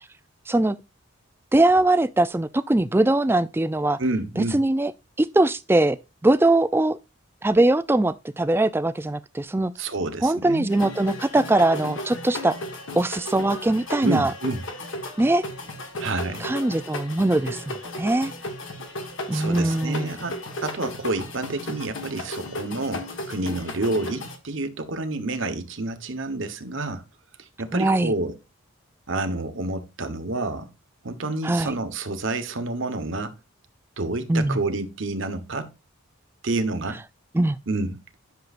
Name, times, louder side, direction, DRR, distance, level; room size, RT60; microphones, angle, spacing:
voice 1, 0.5-0.8 1.5-4.0 4.4-4.9 5.2-6.0 6.2-7.0 7.4-9.7 10.2-12.6 13.0-14.3 15.2-15.4 16.4-18.3 19.3-20.1 27.7-28.1 31.4-31.7 34.3-34.6 37.3-37.6, right 2 dB, 10° right, 0.3 m, -21 dB
voice 2, 4.0-4.6 9.8-10.7 14.0-14.6 16.0-16.5 19.3-27.0 27.4-28.4 29.1-30.7 31.0-33.3 34.0-35.7 36.4-37.0 37.7-38.0, right 2 dB, 60° right, 1.1 m, -29 dB
sound 1, 10.7-24.4, left 1 dB, 60° left, 1.5 m, -35 dB
10.5 x 6.5 x 2.5 m
head